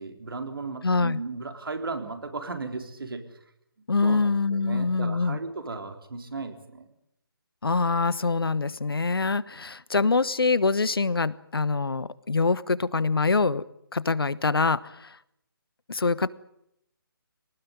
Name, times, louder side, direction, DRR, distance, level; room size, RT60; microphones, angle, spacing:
voice 1, 0.0-3.2 4.0-6.9, right 3 dB, 70° right, 7 dB, 3.8 m, -35 dB
voice 2, 0.8-1.2 3.9-5.4 7.6-13.6 13.9-15.2 15.9-16.3, left 4 dB, 75° left, 18 dB, 1.2 m, -24 dB
23.0 x 19.0 x 9.7 m, 0.79 s
figure-of-eight pair, 150°, 12 cm